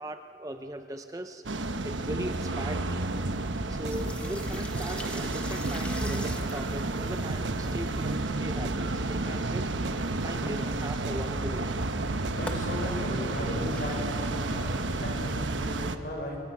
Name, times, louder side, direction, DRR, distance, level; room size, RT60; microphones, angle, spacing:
voice 1, 0.0-1.4 1.8-3.1 3.7-9.7 10.2-11.8, right 1 dB, 20° right, 7 dB, 0.7 m, -39 dB
sound 1, 1.4-16.0, right 2 dB, 85° right, 1.2 m, -31 dB
sound 2, 3.1-15.5, left 1 dB, 5° left, 1.3 m, -45 dB
sound 3, 3.2-3.4 3.7-4.4 4.7-5.2 5.6-5.8 6.1-6.4 7.3-8.2 8.5-9.2 9.5-10.0 10.4-10.6 10.9-11.2 12.1-12.7, right 4 dB, 65° right, 0.5 m, -41 dB
voice 2, 12.4-16.4, left 1 dB, 50° left, 0 dB, 5.8 m, -37 dB
27.5 x 24.0 x 6.1 m, 2.8 s
head